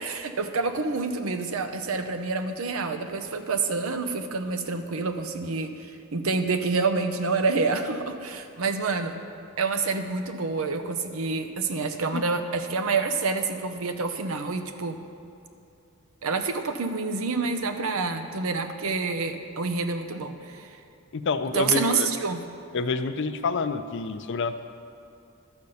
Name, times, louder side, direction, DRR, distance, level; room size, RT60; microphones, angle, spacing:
voice 1, 0.0-9.1 9.6-15.0 16.2-20.8 21.5-22.4, right 4 dB, 80° right, 7 dB, 0.7 m, -28 dB
voice 2, 21.1-22.1 22.7-24.6, left 4 dB, 60° left, 10 dB, 0.5 m, -28 dB
11.5 x 5.2 x 6.9 m, 2.6 s
head